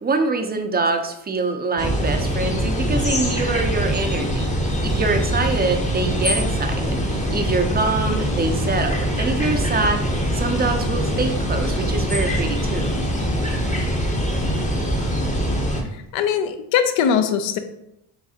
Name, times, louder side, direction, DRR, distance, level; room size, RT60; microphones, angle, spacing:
voice 1, 0.0-4.5 4.8-12.9, right 3 dB, 20° right, 6 dB, 0.5 m, -24 dB
sound 1, 1.8-15.8, equal, 15° left, 0.7 m, -23 dB
voice 2, 16.1-17.6, left 8 dB, 75° left, 9 dB, 0.6 m, -20 dB
4.8 x 3.2 x 2.8 m, 0.83 s
cardioid pair, 90°, 46 cm